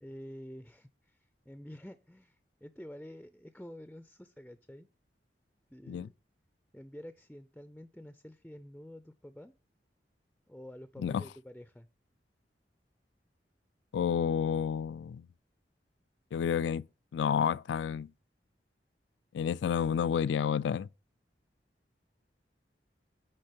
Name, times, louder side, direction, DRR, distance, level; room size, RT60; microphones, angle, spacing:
voice 1, 0.0-4.9 5.7-6.2 6.7-9.5 10.5-11.9, equal, 5° left, 0.4 m, -49 dB
voice 2, 13.9-15.3 16.3-16.8 17.1-18.1 19.3-20.9, left 7 dB, 90° left, 0.3 m, -30 dB
10.0 x 3.6 x 6.7 m
head